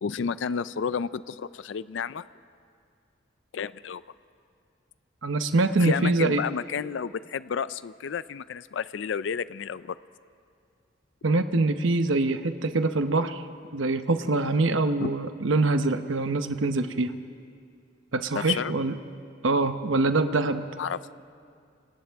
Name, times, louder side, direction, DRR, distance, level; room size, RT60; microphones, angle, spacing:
voice 1, 0.0-2.3 3.5-4.0 5.8-10.0 15.0-15.1 18.3-18.7 20.8-21.1, left 6 dB, 70° left, 16 dB, 0.4 m, -31 dB
voice 2, 5.2-6.4 11.2-13.4 13.7-17.2 18.1-18.9 19.4-20.7, right 3 dB, 85° right, 9 dB, 0.8 m, -24 dB
29.0 x 26.5 x 3.5 m, 2.3 s
head